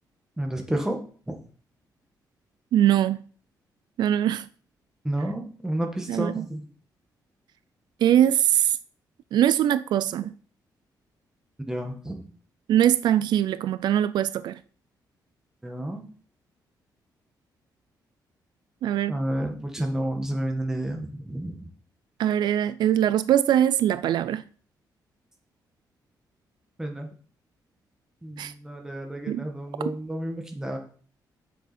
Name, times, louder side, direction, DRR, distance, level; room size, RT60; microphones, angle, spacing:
voice 1, 0.4-1.0 1.3-1.4 5.0-6.6 11.7-12.2 15.6-16.0 19.1-21.7 26.8-27.1 28.2-30.8, right 1 dB, 5° right, 1.5 m, -30 dB
voice 2, 2.7-3.2 4.0-4.4 6.1-6.3 8.0-8.8 9.3-10.3 12.7-14.6 18.8-19.2 22.2-24.4 28.4-28.5 29.3-29.4, right 11 dB, 75° right, 0.4 m, -22 dB
7.8 x 7.5 x 4.3 m
wide cardioid pair, 160°, 7 cm